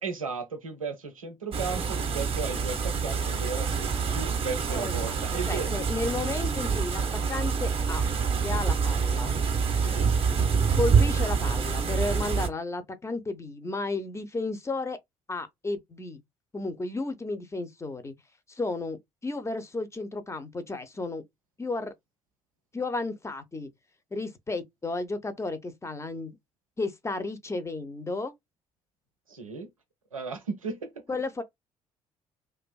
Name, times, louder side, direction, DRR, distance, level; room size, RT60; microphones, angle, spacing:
voice 1, 0.0-5.7 9.8-10.1 29.3-29.7 30.1-31.0, right 4 dB, 85° right, 0.4 m, -35 dB
sound 1, 1.5-12.5, right 5 dB, 35° right, 0.7 m, -26 dB
voice 2, 4.7-8.1 8.4-9.3 10.8-15.0 15.3-16.2 16.5-18.1 18.5-21.2 21.6-21.9 22.7-23.7 24.1-26.4 26.8-28.3 31.1-31.4, left 3 dB, 15° left, 0.5 m, -33 dB
2.5 x 2.3 x 2.3 m
figure-of-eight pair, 45°, 17 cm